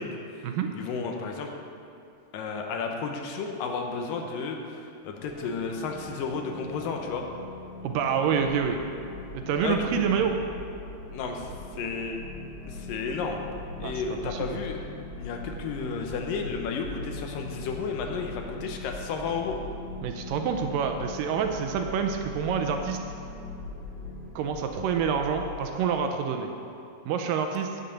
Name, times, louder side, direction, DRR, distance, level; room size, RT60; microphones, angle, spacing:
voice 1, 0.0-0.5 0.8-1.5 2.3-7.3 9.6-9.9 11.1-12.2 12.6-13.4 13.8-14.8 15.2-19.6, left 5 dB, 80° left, 3 dB, 2.4 m, -32 dB
sound 1, 5.2-24.3, left 3 dB, 40° left, 4.1 m, -44 dB
voice 2, 7.8-8.8 9.3-10.4 13.8-13.9 14.2-14.6 20.0-23.0 24.4-26.5 27.1-27.8, right 7 dB, 80° right, 5 dB, 2.2 m, -27 dB
sound 2, 8.4-25.7, left 2 dB, 60° right, 3.4 m, -42 dB
9.8 x 7.5 x 6.9 m, 2.5 s
omnidirectional pair, 4.2 m